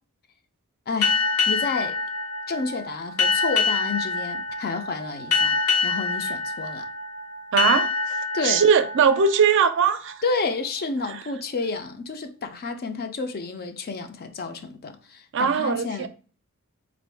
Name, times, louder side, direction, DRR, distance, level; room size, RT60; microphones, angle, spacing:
voice 1, 0.9-1.2 1.5-2.0 2.5-6.9 8.3-8.6 10.2-16.1, left 4 dB, 45° left, 0.5 m, -30 dB
sound 1, 1.0-10.3, left 4 dB, 80° left, 1.0 m, -26 dB
voice 2, 7.5-8.2 8.4-10.2 11.1-11.2 15.3-16.1, right 6 dB, 55° right, 0.4 m, -20 dB
4.5 x 2.6 x 3.3 m
head